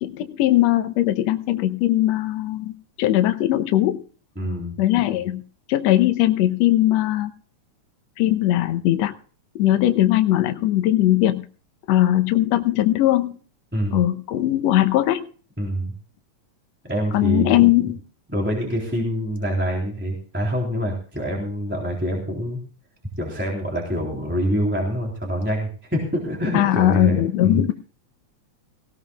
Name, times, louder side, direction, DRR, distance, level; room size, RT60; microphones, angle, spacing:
voice 1, 0.0-4.0 4.8-5.4 5.7-7.3 8.2-9.2 9.6-11.5 11.9-13.4 13.9-15.3 17.1-18.0 26.5-27.7, left 14 dB, 70° left, 8 dB, 1.9 m, -19 dB
voice 2, 4.3-4.7 13.7-14.0 15.6-15.9 16.9-17.6 18.3-22.6 23.2-27.7, equal, 5° right, -2 dB, 3.3 m, -25 dB
19.0 x 16.5 x 2.4 m, 0.41 s
omnidirectional pair, 3.4 m